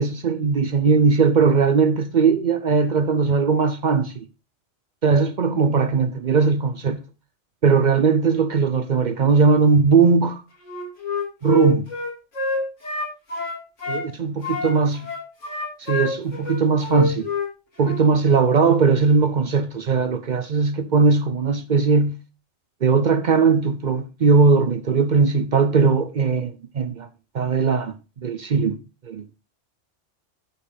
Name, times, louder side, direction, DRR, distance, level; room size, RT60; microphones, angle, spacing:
voice 1, 0.0-4.2 5.0-7.0 7.6-10.4 11.4-11.9 13.9-15.1 15.8-17.3 17.8-22.2 22.8-27.1 27.3-27.9 28.2-28.8 29.1-29.3, right 5 dB, 50° right, 0.6 m, -19 dB
Wind instrument woodwind instrument, 10.6-14.1 14.4-17.5 17.8-18.0, left 3 dB, 85° left, 2.7 m, -27 dB
12.5 x 5.5 x 3.4 m
omnidirectional pair, 1.2 m